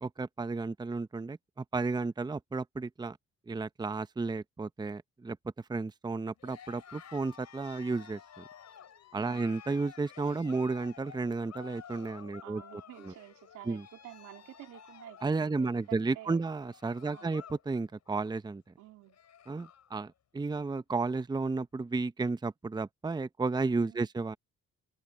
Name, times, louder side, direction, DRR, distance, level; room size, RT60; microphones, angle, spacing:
voice 1, 0.0-3.2 3.5-5.4 5.7-8.5 9.1-12.6 13.0-13.1 13.7-13.8 15.2-18.7 19.5-24.4, right 3 dB, 15° right, 0.7 m, -33 dB
Cheering, 6.4-17.7 18.0-18.4 18.8-18.9 19.1-19.9, left 8 dB, 60° left, 5.8 m, -52 dB
voice 2, 9.2-9.5 12.4-16.4 17.0-17.4 18.8-19.2 23.8-24.1, right 15 dB, 90° right, 2.9 m, -50 dB
cardioid pair, 90°, 30 cm